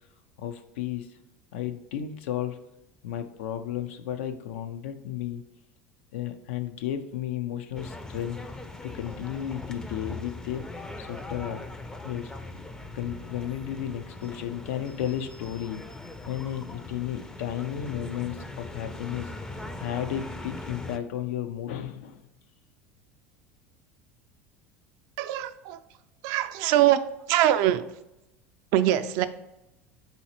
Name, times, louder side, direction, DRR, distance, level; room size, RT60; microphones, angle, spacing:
voice 1, 0.4-1.2 1.5-2.6 3.0-5.4 6.1-8.4 8.8-10.7 11.0-11.6 12.0-12.3 12.9-15.9 16.3-19.3 19.8-22.2, left 10 dB, 80° left, 9 dB, 0.5 m, -33 dB
sound 1, 7.8-21.0, left 2 dB, 10° left, 0.4 m, -40 dB
voice 2, 25.2-25.8 26.2-27.0 27.3-27.8 28.7-29.3, right 13 dB, 65° right, 11 dB, 0.4 m, -22 dB
4.1 x 4.0 x 2.9 m, 0.91 s
hypercardioid pair, 95°, 7 cm